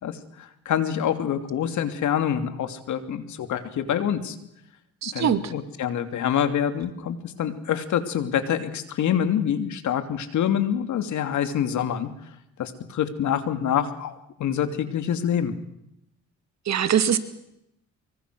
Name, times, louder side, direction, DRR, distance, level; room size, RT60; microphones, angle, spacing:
voice 1, 0.0-4.4 5.1-12.1 12.6-15.5, left 9 dB, 75° left, 9 dB, 2.9 m, -26 dB
voice 2, 5.0-5.5 16.7-17.2, right 9 dB, 65° right, 10 dB, 2.4 m, -22 dB
25.0 x 24.0 x 6.4 m, 0.80 s
cardioid pair, 90°, 30 cm